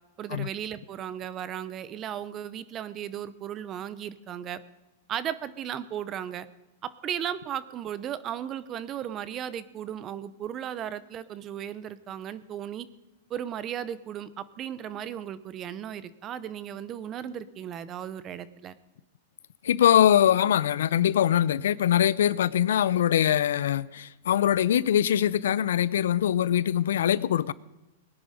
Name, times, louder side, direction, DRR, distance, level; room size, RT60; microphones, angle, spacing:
voice 1, 0.2-4.6 5.1-6.5 6.8-12.9 13.3-18.8, right 10 dB, 30° right, 0.8 m, -36 dB
voice 2, 19.6-27.5, left 10 dB, 85° left, 0.5 m, -23 dB
20.0 x 10.0 x 5.1 m
supercardioid pair, 140°, 0 cm